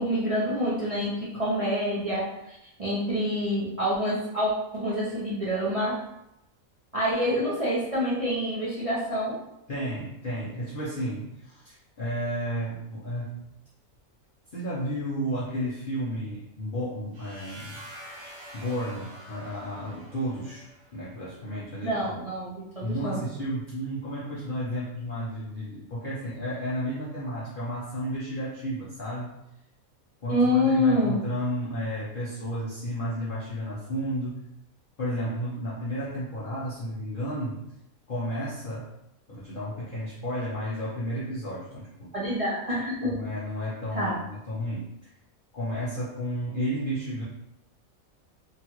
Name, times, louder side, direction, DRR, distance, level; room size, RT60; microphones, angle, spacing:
voice 1, 0.0-6.0 6.9-9.4 21.8-23.2 30.3-31.2 42.1-43.2 43.9-44.2, equal, 50° right, -8 dB, 0.4 m, -27 dB
voice 2, 9.7-13.4 14.5-17.8 18.5-20.7 20.9-22.2 22.8-29.3 30.2-34.4 35.0-37.6 38.1-38.9 39.3-42.1 43.0-45.1 45.5-47.2, equal, 50° left, -8 dB, 0.7 m, -32 dB
sound 1, 17.1-21.0, equal, 80° right, 1.2 m, -46 dB
3.1 x 2.3 x 2.9 m, 0.85 s
omnidirectional pair, 1.5 m